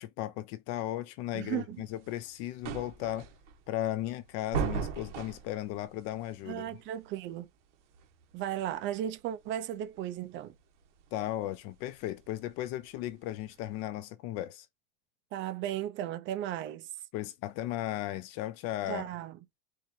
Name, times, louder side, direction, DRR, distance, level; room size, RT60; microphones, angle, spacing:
voice 1, 0.0-3.3 3.7-6.7 11.1-14.7 17.1-19.0, left 13 dB, 45° left, 0.5 m, -36 dB
voice 2, 1.3-1.8 6.5-7.5 8.3-10.6 15.3-16.9 18.9-19.4, right 11 dB, 35° right, 0.4 m, -35 dB
sound 1, 1.7-13.8, right 6 dB, 80° right, 1.3 m, -41 dB
4.4 x 2.5 x 2.7 m
supercardioid pair, 140°, 35 cm